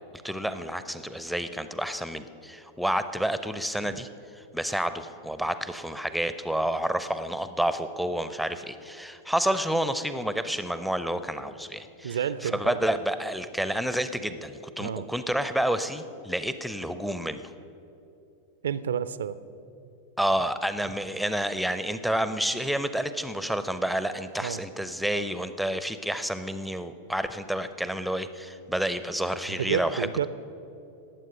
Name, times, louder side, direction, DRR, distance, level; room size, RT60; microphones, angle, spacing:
voice 1, 0.2-4.1 4.4-17.4 20.2-30.3, right 1 dB, ahead, 11 dB, 0.5 m, -29 dB
voice 2, 12.0-12.8 14.8-15.1 18.6-19.4 24.4-24.6 29.5-30.3, right 8 dB, 65° right, 16 dB, 0.4 m, -30 dB
19.0 x 7.7 x 5.2 m, 2.9 s
figure-of-eight pair, 90°, 0 cm